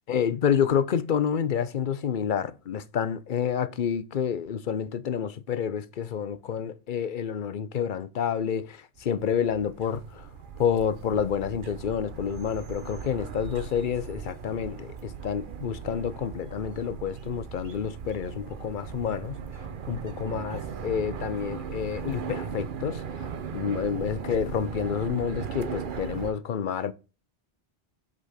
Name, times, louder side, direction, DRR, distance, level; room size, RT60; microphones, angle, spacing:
voice 1, 0.1-10.3 10.6-19.4 19.9-23.3 23.5-26.9, left 8 dB, 55° left, 0.8 m, -29 dB
sound 1, 9.0-26.3, right 6 dB, 55° right, 0.8 m, -38 dB
8.1 x 4.0 x 5.0 m
omnidirectional pair, 1.1 m